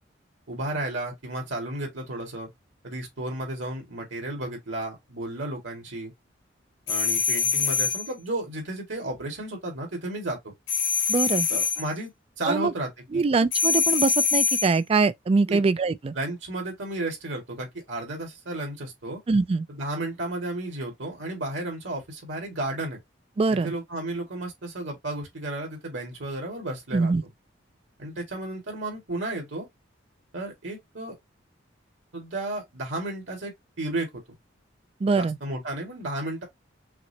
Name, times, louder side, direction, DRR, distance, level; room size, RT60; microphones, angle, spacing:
voice 1, 0.5-2.5 2.8-6.1 6.9-10.5 11.5-12.1 12.4-13.2 15.5-15.6 16.1-19.2 19.7-23.0 23.6-27.1 28.0-29.7 30.3-31.2 32.1-33.5 33.8-34.2 35.1-36.4, right 1 dB, 70° right, 2.1 m, -33 dB
sound 1, 6.9-8.1 10.7-11.9 13.5-14.8, left 5 dB, 85° left, 1.4 m, -24 dB
voice 2, 11.1-11.5 12.5-12.7 13.1-16.1 19.3-19.7 23.4-23.7 26.9-27.2 35.0-35.4, right 4 dB, 30° right, 0.3 m, -23 dB
5.8 x 2.1 x 2.7 m
head